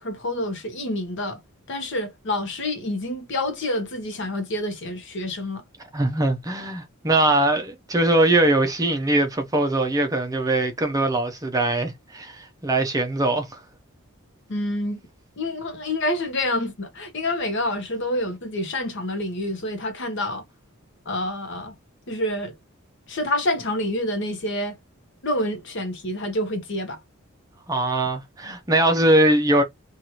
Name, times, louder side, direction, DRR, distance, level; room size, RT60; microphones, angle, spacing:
voice 1, 0.0-1.4 1.7-5.6 14.5-15.0 15.4-20.4 21.1-21.7 22.1-22.5 23.1-24.8 25.2-27.0, left 1 dB, 55° left, 0.8 m, -27 dB
voice 2, 5.9-13.6 27.7-29.6, right 1 dB, 15° right, 0.5 m, -21 dB
2.8 x 2.4 x 2.9 m
head